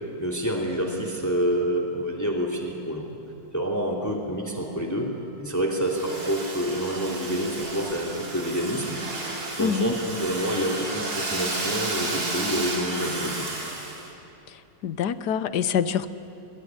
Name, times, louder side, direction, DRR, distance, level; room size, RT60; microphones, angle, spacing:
voice 1, 0.2-3.0 3.5-5.1 5.4-13.5, equal, 10° left, -1 dB, 2.9 m, -28 dB
Domestic sounds home sounds, 5.9-14.1, right 2 dB, 55° right, 3.7 m, -32 dB
voice 2, 9.6-9.9 14.8-16.1, left 8 dB, 65° left, 14 dB, 1.4 m, -25 dB
26.5 x 22.0 x 9.7 m, 2.7 s
omnidirectional pair, 1.9 m